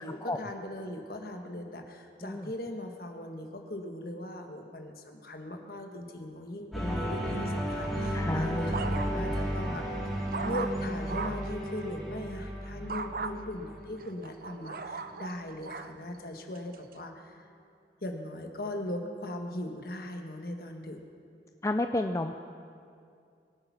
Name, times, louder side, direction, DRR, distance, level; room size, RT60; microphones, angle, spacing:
voice 1, 0.0-9.9 10.4-17.5 18.0-21.0, left 1 dB, 55° left, 3 dB, 1.5 m, -39 dB
voice 2, 2.2-2.5 8.1-8.7 21.6-22.4, left 2 dB, 15° left, 6 dB, 0.4 m, -31 dB
sound 1, 6.7-14.9, equal, ahead, 3.0 m, -33 dB
sound 2, 8.0-9.4 9.8-11.5 12.9-13.3 14.0-15.9 16.5-16.9, right 4 dB, 50° right, 0.6 m, -38 dB
24.0 x 8.9 x 5.9 m, 2.4 s
head